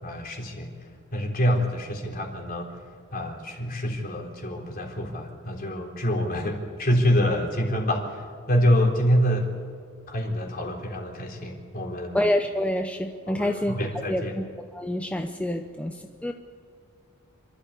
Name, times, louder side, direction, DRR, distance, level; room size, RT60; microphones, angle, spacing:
voice 1, 0.0-0.7 1.1-2.7 3.1-9.5 10.1-12.2 13.3-14.4, equal, 45° left, 1 dB, 3.6 m, -26 dB
voice 2, 12.1-13.7 14.1-14.4 14.7-16.3, left 1 dB, 5° left, 5 dB, 0.7 m, -27 dB
27.0 x 13.0 x 8.4 m, 2.3 s
head